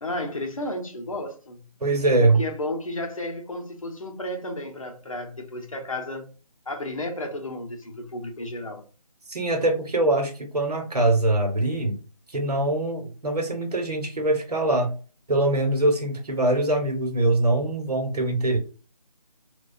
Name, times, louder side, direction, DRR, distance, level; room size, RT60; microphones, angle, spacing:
voice 1, 0.0-1.7 2.4-6.3 6.7-8.9, left 1 dB, 55° left, 0.7 m, -33 dB
voice 2, 1.8-2.4 9.3-12.0 12.3-14.9 15.3-18.6, right 2 dB, 70° right, 0.9 m, -23 dB
2.3 x 2.3 x 2.3 m
figure-of-eight pair, 180°, 21 cm